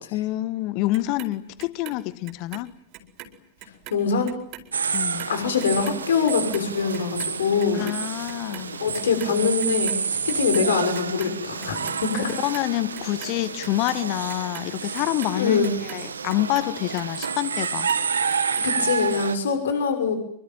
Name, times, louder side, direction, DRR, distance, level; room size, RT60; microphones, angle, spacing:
voice 1, 0.1-2.7 4.9-5.3 7.7-8.8 12.1-17.9, left 17 dB, 45° left, 1.5 m, -27 dB
Clock, 0.9-3.3 3.6-10.0 10.3-11.3 11.6-12.6 12.9-17.4 17.6-18.6 19.0-19.1, right 10 dB, 40° right, 4.5 m, -42 dB
voice 2, 3.9-4.3 5.3-7.9 8.8-12.3 15.3-15.7 18.6-20.1, left 5 dB, 65° left, 6.3 m, -24 dB
sound 1, 4.7-19.4, right 6 dB, 70° right, 1.7 m, -29 dB
26.0 x 23.5 x 9.3 m
figure-of-eight pair, 90°, 0 cm